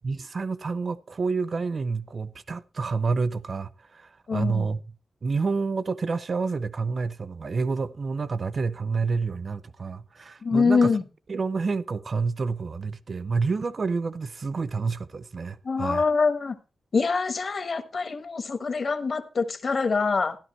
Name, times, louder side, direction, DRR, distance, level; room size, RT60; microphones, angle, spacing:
voice 1, 0.0-4.8 5.2-10.9 11.3-16.0, right 4 dB, 40° right, 0.5 m, -28 dB
voice 2, 4.3-4.7 10.4-11.0 15.6-16.6 16.9-20.4, left 4 dB, 45° left, 1.2 m, -24 dB
13.5 x 11.5 x 3.1 m
wide cardioid pair, 160°, 0 cm